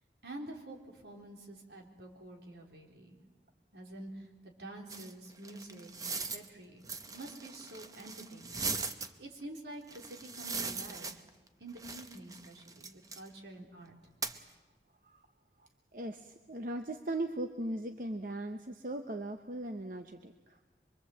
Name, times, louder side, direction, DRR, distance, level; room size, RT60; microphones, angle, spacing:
voice 1, 0.2-3.2 3.7-11.2 11.6-13.9, right 1 dB, 75° right, 0 dB, 3.8 m, -48 dB
sound 1, 4.9-6.5 6.8-9.1 9.9-11.5 11.8-13.3 14.2-14.4, right 4 dB, 20° right, 0.9 m, -40 dB
voice 2, 15.9-20.6, right 1 dB, 50° right, 6 dB, 0.9 m, -38 dB
24.5 x 23.5 x 7.8 m, 1.2 s
head